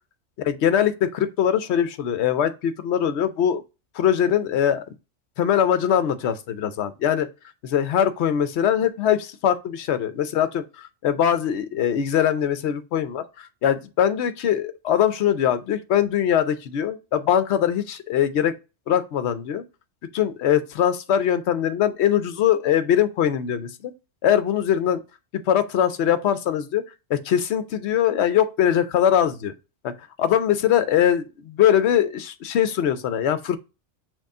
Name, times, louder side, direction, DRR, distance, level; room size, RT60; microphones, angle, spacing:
voice 1, 0.4-3.6 3.9-4.8 5.4-7.3 7.6-18.5 18.9-19.6 20.1-23.9 24.2-25.0 25.5-29.5 29.8-29.9 30.2-33.6, left 9 dB, 65° left, 0.8 m, -22 dB
6.3 x 2.3 x 3.5 m
omnidirectional pair, 1.3 m